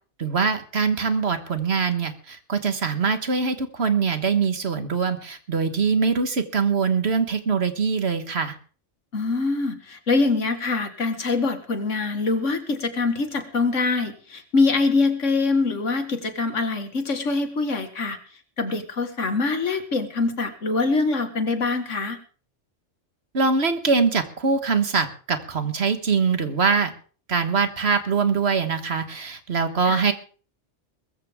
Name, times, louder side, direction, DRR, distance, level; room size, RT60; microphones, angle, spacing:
voice 1, 0.2-8.6 23.3-26.9 27.3-30.1, right 5 dB, 60° right, 9 dB, 1.8 m, -23 dB
voice 2, 9.1-18.2 18.6-22.2 29.9-30.0, left 3 dB, 90° left, 8 dB, 2.1 m, -24 dB
20.5 x 14.5 x 3.7 m, 0.41 s
omnidirectional pair, 1.2 m